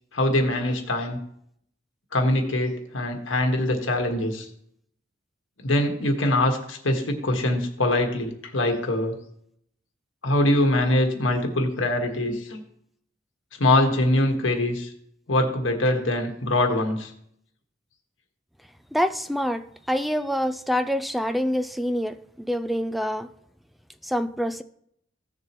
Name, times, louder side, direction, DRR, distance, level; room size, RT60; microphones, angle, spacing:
voice 1, 0.1-1.2 2.1-4.5 5.6-9.2 10.2-12.6 13.6-14.9 15.3-17.1, left 1 dB, 80° left, 1.6 m, -23 dB
voice 2, 18.9-23.3 24.0-24.6, equal, ahead, 0.4 m, -26 dB
15.5 x 6.7 x 3.0 m
head